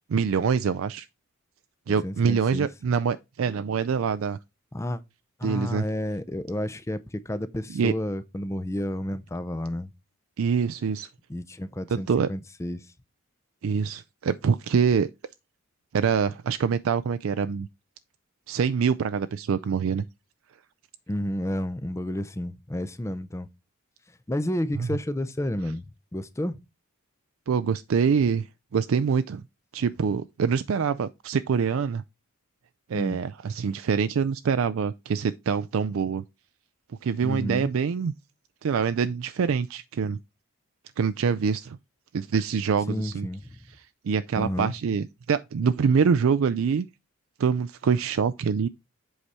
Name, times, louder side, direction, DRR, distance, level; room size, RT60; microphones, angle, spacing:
voice 1, 0.1-1.1 1.9-4.4 5.4-5.8 7.7-7.9 10.4-11.1 11.9-12.3 13.6-15.1 15.9-17.7 18.5-20.0 24.8-24.9 27.5-28.5 28.7-29.4 29.7-32.0 32.9-36.2 37.0-38.1 38.6-40.2 41.0-41.8 42.1-43.3 44.0-46.9 47.4-48.7, right 6 dB, 70° right, 0.4 m, -25 dB
voice 2, 2.0-2.7 4.7-5.0 5.4-9.9 11.3-12.9 21.1-23.5 24.3-25.8 26.1-26.6 32.9-33.2 37.2-37.7 42.9-43.5 44.4-44.7, left 1 dB, 15° left, 0.5 m, -31 dB
7.9 x 4.8 x 4.2 m
head